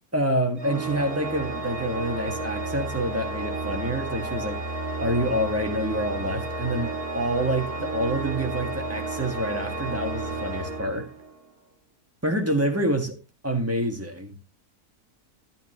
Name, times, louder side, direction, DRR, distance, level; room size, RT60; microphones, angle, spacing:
voice 1, 0.1-4.6 5.0-11.1 12.2-13.2 13.4-14.4, right 1 dB, 10° right, 1.6 m, -27 dB
Organ, 0.6-11.5, right 2 dB, 70° right, 2.0 m, -32 dB
12.0 x 9.0 x 3.0 m
omnidirectional pair, 1.7 m